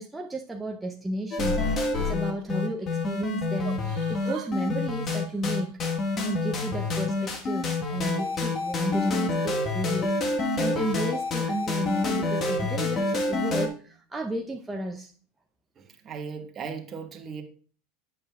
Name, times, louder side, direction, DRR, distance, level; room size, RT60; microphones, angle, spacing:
voice 1, 0.0-5.8 6.1-15.1, right 1 dB, 10° right, 1 dB, 0.6 m, -33 dB
sound 1, 1.3-13.7, left 3 dB, 35° left, 1.3 m, -27 dB
Yell / Crying sobbing, 1.9-3.0 3.6-4.5 4.8-6.2 6.7-8.3 9.0-9.2, right 10 dB, 55° right, 1.8 m, -46 dB
voice 2, 15.8-17.4, right 6 dB, 35° right, 4 dB, 1.2 m, -37 dB
8.5 x 7.0 x 2.3 m, 0.42 s
hypercardioid pair, 105°, 0 cm